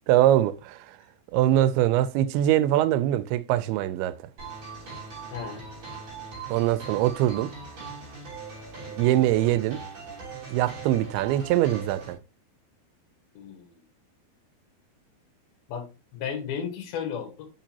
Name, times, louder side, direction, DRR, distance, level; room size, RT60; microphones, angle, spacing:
voice 1, 0.1-1.0 1.3-4.2 6.5-7.5 9.0-9.8 10.5-12.2, right 13 dB, 90° right, 2.5 m, -23 dB
sound 1, 4.4-12.1, right 4 dB, 35° right, 3.5 m, -40 dB
voice 2, 5.3-5.6 13.4-13.8 15.7-17.5, left 7 dB, 75° left, 3.2 m, -34 dB
6.9 x 5.9 x 2.8 m
omnidirectional pair, 4.4 m